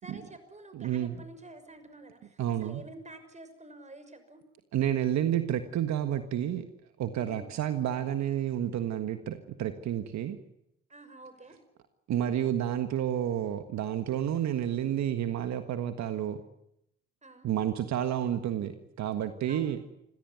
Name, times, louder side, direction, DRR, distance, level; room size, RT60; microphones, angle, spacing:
voice 1, 0.0-4.4 7.2-7.5 10.9-11.6 17.2-17.5 19.5-19.8, right 2 dB, 25° right, 10 dB, 6.2 m, -49 dB
voice 2, 0.7-1.2 2.4-2.8 4.7-6.6 7.0-10.4 12.1-16.4 17.4-19.8, right 10 dB, 70° right, 9 dB, 1.6 m, -30 dB
26.5 x 16.0 x 9.5 m, 0.80 s
supercardioid pair, 60°, 29 cm